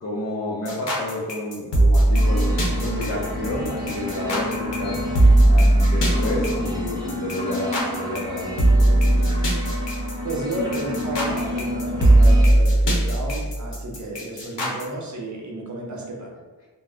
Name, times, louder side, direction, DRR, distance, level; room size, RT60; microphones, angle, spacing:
voice 1, 0.0-5.2 5.5-9.4, left 1 dB, 40° left, -5 dB, 0.5 m, -30 dB
sound 1, 0.7-14.8, right 1 dB, 75° left, 0.8 m, -19 dB
sound 2, 2.1-12.4, left 1 dB, 10° right, 0.7 m, -30 dB
voice 2, 10.2-16.4, right 1 dB, 45° right, -1 dB, 0.7 m, -32 dB
2.2 x 2.0 x 3.5 m, 1.3 s
wide cardioid pair, 60°, 43 cm